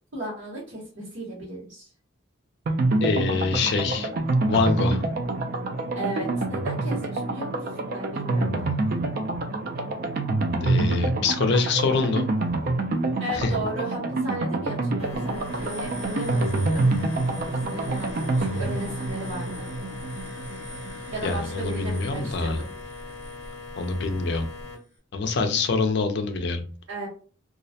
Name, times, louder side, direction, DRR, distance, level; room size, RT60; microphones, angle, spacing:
voice 1, 0.1-1.9 5.9-8.7 13.2-16.9 17.6-19.7 21.1-22.7 26.9-27.1, right 1 dB, 70° right, -7 dB, 1.0 m, -35 dB
sound 1, 2.7-21.3 21.5-21.6 21.9-22.0, right 2 dB, 45° right, 0.3 m, -27 dB
voice 2, 3.0-4.1 4.5-5.0 10.6-12.3 13.3-13.5 21.2-22.6 23.8-24.5 25.1-26.6, left 4 dB, 55° left, 6 dB, 0.4 m, -25 dB
sound 2, 15.0-24.8, left 2 dB, 30° left, 0.9 m, -39 dB
2.3 x 2.0 x 2.6 m, 0.40 s
head